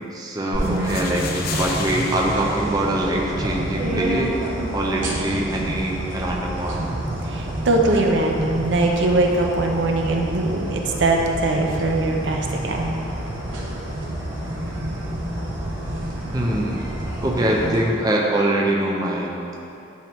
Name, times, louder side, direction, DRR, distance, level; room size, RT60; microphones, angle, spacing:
voice 1, 0.0-4.3 4.7-6.8 16.3-16.8 17.2-19.4, right 1 dB, 20° right, -2 dB, 0.5 m, -23 dB
sound 1, 0.5-17.8, right 1 dB, 85° right, 1.3 m, -29 dB
sound 2, 0.6-3.6, left 5 dB, 50° left, 0.4 m, -34 dB
voice 2, 0.6-1.0 7.2-13.0, right 2 dB, 70° right, 1 dB, 0.6 m, -21 dB
10.5 x 3.4 x 3.0 m, 2.8 s
head